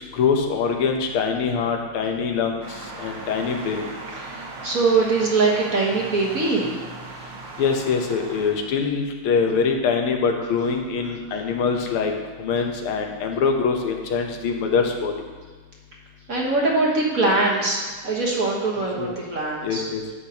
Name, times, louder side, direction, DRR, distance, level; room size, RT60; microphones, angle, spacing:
voice 1, 0.1-2.6 3.0-3.8 7.6-12.1 12.4-15.1 19.0-19.1 19.6-20.0, left 5 dB, 90° left, 3 dB, 1.8 m, -23 dB
sound 1, 2.6-8.5, right 3 dB, 65° right, 1.8 m, -38 dB
voice 2, 4.2-6.7 11.3-11.4 16.3-19.8, right 3 dB, 45° right, -3 dB, 1.6 m, -22 dB
10.5 x 8.0 x 2.9 m, 1.4 s
omnidirectional pair, 2.3 m